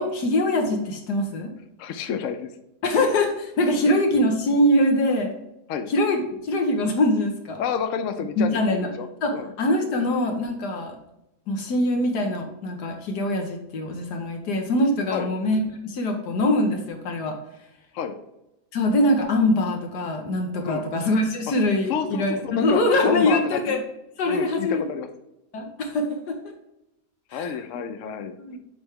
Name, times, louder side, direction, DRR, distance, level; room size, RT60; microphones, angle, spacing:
voice 1, 0.0-1.5 2.8-5.3 5.9-7.6 8.4-8.9 9.2-11.0 11.5-17.3 18.7-23.8 24.2-24.8 25.5-26.4 27.3-27.8 28.5-28.6, left 1 dB, 85° left, 3 dB, 1.7 m, -23 dB
voice 2, 1.8-2.5 5.7-5.9 7.6-8.7 9.0-9.1 9.3-9.5 15.1-15.3 17.9-18.2 20.6-20.9 21.9-23.6 24.3-25.1 27.3-28.3, left 7 dB, 65° left, 8 dB, 0.9 m, -29 dB
8.0 x 3.3 x 3.6 m, 0.89 s
omnidirectional pair, 1.7 m